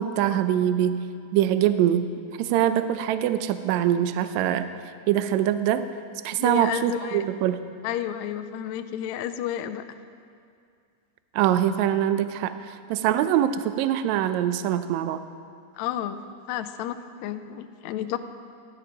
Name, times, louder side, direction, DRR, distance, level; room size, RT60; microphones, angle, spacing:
voice 1, 0.0-2.1 2.4-4.7 5.1-5.9 6.2-7.6 11.3-15.2, right 11 dB, 80° right, 11 dB, 1.6 m, -23 dB
voice 2, 6.4-7.2 7.8-9.8 15.8-16.2 16.5-18.2, left 11 dB, 85° left, 9 dB, 1.6 m, -31 dB
16.0 x 12.0 x 5.2 m, 2.3 s
omnidirectional pair, 3.9 m